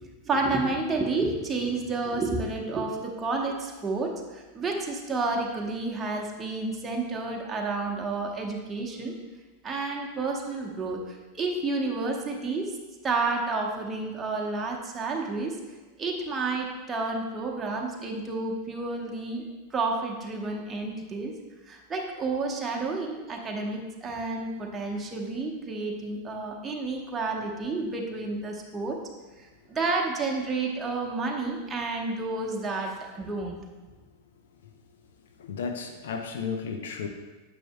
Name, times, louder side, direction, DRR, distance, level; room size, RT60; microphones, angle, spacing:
voice 1, 0.0-9.1 9.6-12.7 13.0-15.6 16.0-19.4 19.7-21.3 21.7-29.0 29.7-33.6, right 3 dB, 15° right, -1 dB, 1.0 m, -30 dB
voice 2, 34.5-35.0 35.4-37.1, left 5 dB, 60° left, 5 dB, 0.6 m, -34 dB
9.0 x 7.1 x 2.2 m, 1.2 s
figure-of-eight pair, 90°, 0 cm